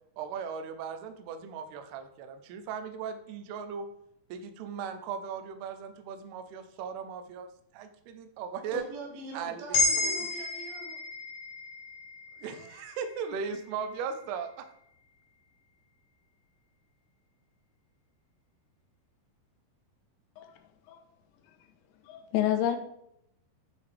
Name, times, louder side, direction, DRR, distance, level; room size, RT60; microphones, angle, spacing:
voice 1, 0.2-3.9 4.3-7.5 7.7-8.8 9.3-10.3 12.4-14.7, right 6 dB, 80° right, 8 dB, 2.6 m, -38 dB
voice 2, 8.7-11.0, right 4 dB, 60° right, 1 dB, 3.1 m, -42 dB
sound 1, 9.7-14.0, left 3 dB, 60° left, 2.4 m, -32 dB
voice 3, 22.1-22.8, left 11 dB, 90° left, 6 dB, 3.0 m, -28 dB
8.8 x 6.2 x 3.3 m, 0.75 s
omnidirectional pair, 4.9 m